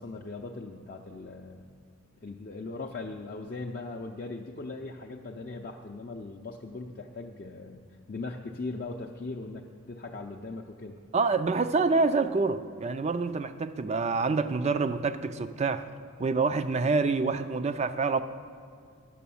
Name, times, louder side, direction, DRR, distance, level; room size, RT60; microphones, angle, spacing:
voice 1, 0.0-1.7 2.2-11.0, left 3 dB, 40° left, 0 dB, 0.5 m, -39 dB
voice 2, 11.1-15.9 16.2-18.2, right 4 dB, 30° right, 11 dB, 0.3 m, -27 dB
10.0 x 6.8 x 7.0 m, 2.2 s
head